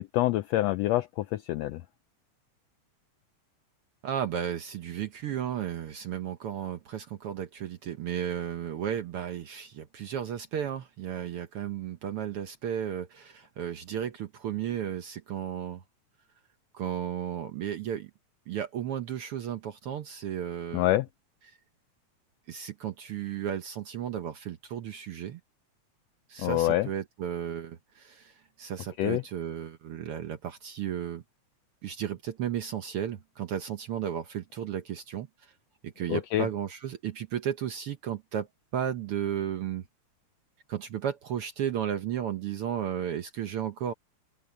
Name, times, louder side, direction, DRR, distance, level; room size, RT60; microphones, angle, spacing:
voice 1, 0.0-1.8 20.7-21.1 26.4-26.9 29.0-29.2 36.1-36.5, left 15 dB, 80° left, 1.5 m, -26 dB
voice 2, 4.0-15.8 16.7-18.1 18.5-20.9 21.5-21.6 22.5-25.4 26.3-31.2 31.8-35.5 35.8-38.5 38.7-39.8 40.7-43.9, right 9 dB, 65° right, 1.4 m, -34 dB
open air
omnidirectional pair, 3.5 m